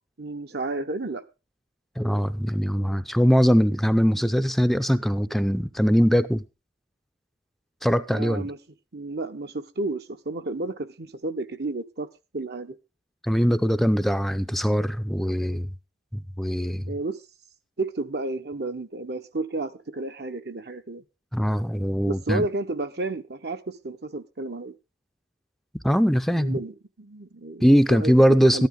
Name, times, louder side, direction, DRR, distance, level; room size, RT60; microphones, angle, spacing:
voice 1, 0.2-1.2 8.1-8.6 8.9-12.1 12.3-12.8 16.9-17.2 17.8-21.0 22.0-24.7 26.4-28.1 28.4-28.7, right 2 dB, 65° right, 1.2 m, -32 dB
voice 2, 2.0-6.4 7.8-8.5 13.2-15.7 16.4-16.8 21.3-22.5 25.8-26.6 27.6-28.7, equal, ahead, 0.5 m, -21 dB
13.5 x 12.0 x 3.8 m
head